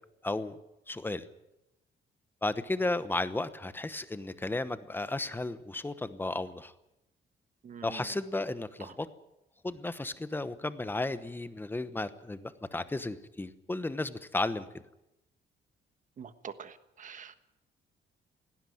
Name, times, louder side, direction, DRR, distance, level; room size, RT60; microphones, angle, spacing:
voice 1, 0.2-0.6 0.9-1.2 2.4-6.7 7.8-9.1 9.6-14.7, left 2 dB, 10° left, 13 dB, 1.0 m, -34 dB
voice 2, 7.6-8.0 16.2-17.5, right 7 dB, 40° right, 11 dB, 1.4 m, -45 dB
18.0 x 16.5 x 9.4 m, 0.89 s
cardioid pair, 160°, 19 cm